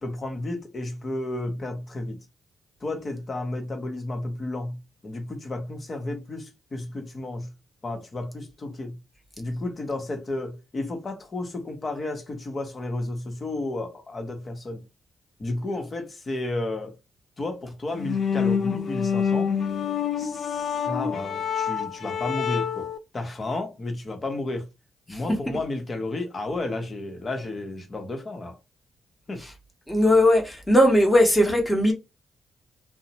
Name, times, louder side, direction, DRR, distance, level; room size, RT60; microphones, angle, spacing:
voice 1, 0.0-2.3 2.8-7.5 7.8-9.0 9.4-14.8 15.4-17.0 17.4-19.6 20.2-24.7 25.1-28.6 29.3-29.5, left 2 dB, 40° left, 0.9 m, -32 dB
sound 1, 17.9-23.0, left 7 dB, 60° left, 0.3 m, -27 dB
voice 2, 29.9-31.9, left 1 dB, 10° left, 1.0 m, -18 dB
2.6 x 2.1 x 2.9 m
cardioid pair, 70°, 0 cm